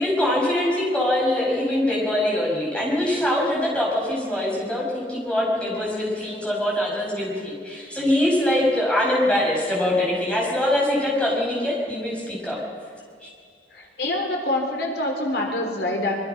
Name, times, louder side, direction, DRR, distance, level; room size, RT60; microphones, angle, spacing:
voice 1, 0.0-12.6 13.2-13.3, left 1 dB, 5° left, -4 dB, 6.2 m, -23 dB
voice 2, 13.7-16.1, left 1 dB, 60° left, 2 dB, 3.4 m, -26 dB
24.5 x 22.5 x 5.9 m, 2.1 s
head